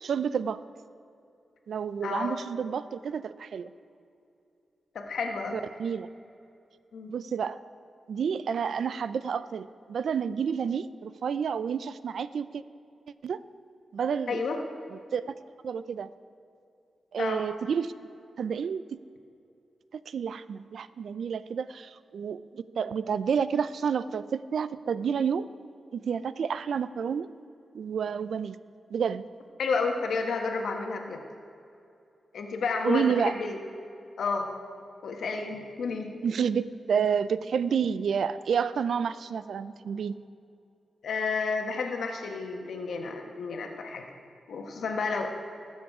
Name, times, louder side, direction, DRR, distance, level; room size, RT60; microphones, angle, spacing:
voice 1, 0.0-0.6 1.7-3.7 5.5-6.1 7.1-7.6 8.1-12.6 13.2-13.4 13.9-14.4 15.1-15.3 15.6-16.1 17.1-17.9 18.4-18.8 20.1-25.5 25.9-27.3 27.7-28.6 28.9-29.3 32.8-33.3 36.2-40.2, right 7 dB, 75° right, 15 dB, 0.4 m, -29 dB
voice 2, 2.0-2.4 4.9-5.6 6.9-7.1 14.3-14.6 17.2-17.4 29.6-31.2 32.3-33.6 34.2-34.5 35.0-36.1 41.0-44.0 44.5-45.3, left 4 dB, 80° left, 3 dB, 1.4 m, -31 dB
20.0 x 7.2 x 4.9 m, 2.6 s
cardioid pair, 95°, 0 cm